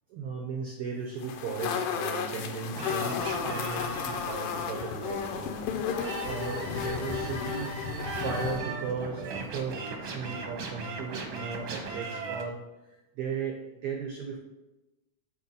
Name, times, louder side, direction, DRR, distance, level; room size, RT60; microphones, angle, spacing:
voice 1, 0.1-5.9 6.2-7.7 8.2-12.6 13.2-14.4, right 5 dB, 90° right, 2 dB, 1.3 m, -36 dB
sound 1, 1.2-8.6, left 7 dB, 90° left, 2.3 m, -33 dB
sound 2, 2.7-12.4, right 4 dB, 75° right, 1.2 m, -38 dB
7.0 x 4.3 x 5.5 m, 1.0 s
omnidirectional pair, 3.6 m